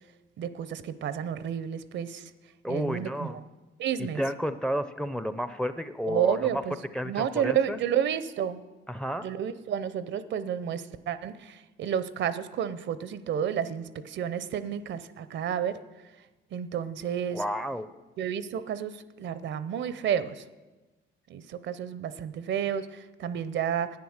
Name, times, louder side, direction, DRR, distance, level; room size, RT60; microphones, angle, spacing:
voice 1, 0.4-2.2 2.7-3.3 3.8-4.2 6.0-6.8 7.0-8.6 9.2-15.8 16.5-17.4 18.2-18.9 19.2-20.4 21.3-24.0, right 9 dB, 65° right, 14 dB, 0.7 m, -31 dB
voice 2, 2.6-3.4 4.0-6.6 6.9-7.8 8.9-9.3 17.3-17.9, equal, 5° left, 12 dB, 0.6 m, -31 dB
10.5 x 9.2 x 6.5 m, 1.2 s
cardioid pair, 90°, 20 cm